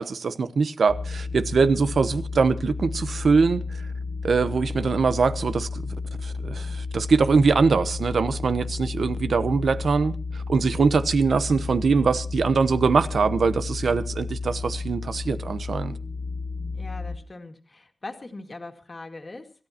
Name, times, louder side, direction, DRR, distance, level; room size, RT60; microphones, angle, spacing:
voice 1, 0.0-3.6 4.2-6.0 6.2-10.1 10.5-16.0, right 4 dB, 90° right, 1.0 m, -22 dB
sound 1, 0.9-17.2, left 4 dB, 80° left, 2.9 m, -32 dB
voice 2, 16.7-19.5, left 2 dB, 40° left, 2.0 m, -40 dB
26.0 x 13.5 x 2.9 m
wide cardioid pair, 105°, 0 cm